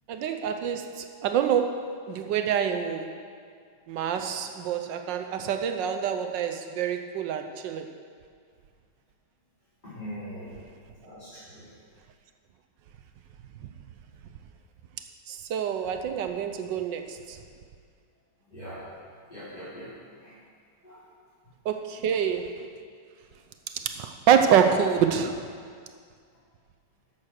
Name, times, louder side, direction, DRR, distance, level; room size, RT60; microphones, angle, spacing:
voice 1, 0.1-3.1 3.9-7.9 15.3-17.4 21.6-22.5 23.7-25.5, right 8 dB, 75° right, 7 dB, 1.3 m, -26 dB
voice 2, 9.8-10.6 11.0-11.6 18.5-18.8 19.3-19.9 20.2-20.3 20.8-21.0, equal, 20° left, -14 dB, 3.7 m, -41 dB
11.0 x 7.4 x 6.4 m, 2.1 s
omnidirectional pair, 2.1 m